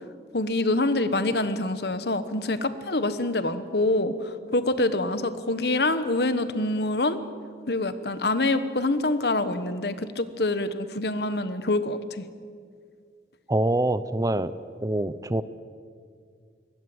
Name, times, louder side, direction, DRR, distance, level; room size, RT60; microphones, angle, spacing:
voice 1, 0.3-7.2 7.7-12.2, left 2 dB, 65° left, 12 dB, 1.2 m, -26 dB
voice 2, 13.5-14.5 14.8-15.4, right 1 dB, 20° right, 15 dB, 0.6 m, -25 dB
23.0 x 19.0 x 7.9 m, 2.2 s
head